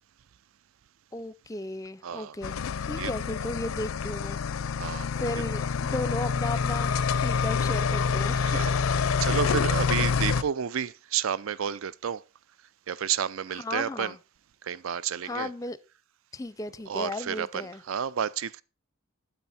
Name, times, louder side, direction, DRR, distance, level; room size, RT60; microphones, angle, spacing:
voice 1, 1.1-2.6 2.8-4.4 4.8-6.9 7.2-8.6 9.3-9.4 13.5-14.2 15.2-15.8 16.3-17.8, left 2 dB, 15° left, 0.5 m, -35 dB
voice 2, 2.0-2.3 3.0-3.1 4.8-5.1 8.4-8.8 9.2-12.2 12.9-14.1 14.6-15.5 16.9-17.6 17.9-18.6, right 8 dB, 75° right, 0.5 m, -30 dB
sound 1, 2.4-10.4, left 5 dB, 85° left, 0.5 m, -27 dB
9.1 x 8.2 x 4.2 m
head